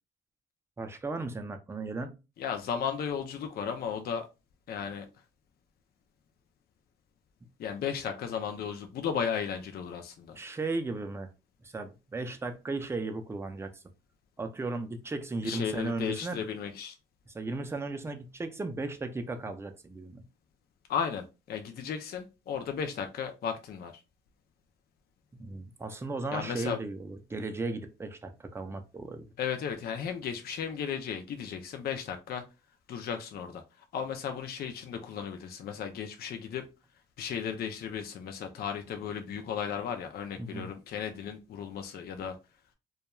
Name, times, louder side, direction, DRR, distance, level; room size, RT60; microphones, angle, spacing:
voice 1, 0.8-2.2 10.4-11.3 11.6-13.8 14.4-16.4 17.3-20.2 25.3-29.3 40.4-40.7, right 3 dB, 15° right, 0.4 m, -36 dB
voice 2, 2.4-4.3 4.7-5.1 7.6-10.4 15.4-17.0 20.9-24.0 26.3-26.8 29.4-32.4 32.9-33.6 33.9-36.7 37.2-42.4, left 7 dB, 50° left, 0.4 m, -35 dB
2.3 x 2.2 x 2.9 m
cardioid pair, 90°, 20 cm